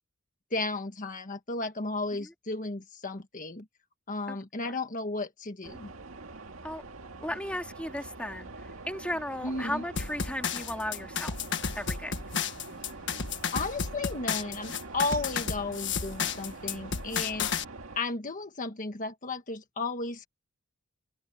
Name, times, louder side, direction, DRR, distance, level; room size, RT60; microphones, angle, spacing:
voice 1, 0.5-3.7 4.1-5.9 9.4-9.8 13.5-17.5 17.9-20.3, left 3 dB, 40° left, 1.5 m, -34 dB
sound 1, 5.6-18.0, right 3 dB, 70° right, 2.2 m, -44 dB
voice 2, 7.2-8.5 8.9-11.3 11.7-12.1, left 1 dB, 5° left, 2.4 m, -35 dB
oldschool-glitchy, 10.0-17.6, left 6 dB, 60° left, 1.6 m, -32 dB
head